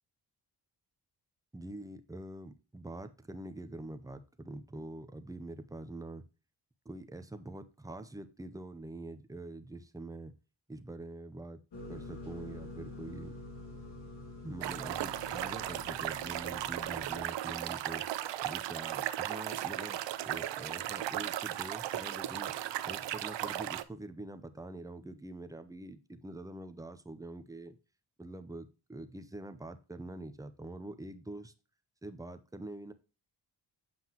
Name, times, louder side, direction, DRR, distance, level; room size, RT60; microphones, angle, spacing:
voice 1, 1.5-6.2 6.8-10.3 10.7-11.6 11.9-13.4 14.4-18.0 18.4-22.5 22.8-27.8 28.2-31.5 32.0-32.9, right 2 dB, 10° right, 0.6 m, -45 dB
sound 1, 11.7-17.2, left 2 dB, 75° left, 2.5 m, -47 dB
sound 2, 14.6-23.8, right 12 dB, 85° right, 0.6 m, -36 dB
7.8 x 5.6 x 2.9 m
wide cardioid pair, 130°, 42 cm